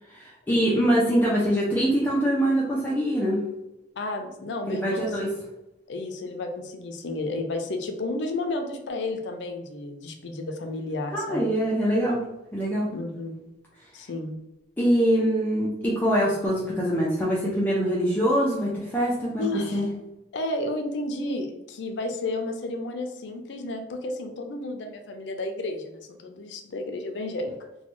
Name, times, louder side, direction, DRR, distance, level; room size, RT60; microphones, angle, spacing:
voice 1, 0.2-3.4 4.7-5.3 11.1-12.2 12.5-12.9 14.8-19.4 19.7-19.9, equal, 10° left, -6 dB, 0.4 m, -23 dB
voice 2, 4.0-5.4 5.9-11.5 12.9-13.4 13.9-14.4 19.4-19.9 20.3-27.5, left 2 dB, 75° left, 5 dB, 0.5 m, -32 dB
3.1 x 2.2 x 3.0 m, 0.97 s
head